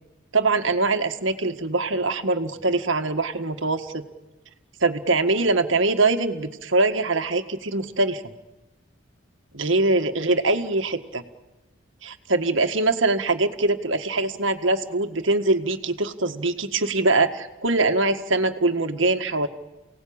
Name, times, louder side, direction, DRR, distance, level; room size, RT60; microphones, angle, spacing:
voice 1, 0.3-4.0 4.8-8.2 9.5-11.2 12.0-19.5, right 2 dB, 70° right, 7 dB, 1.8 m, -23 dB
29.5 x 18.0 x 8.8 m, 1.1 s
head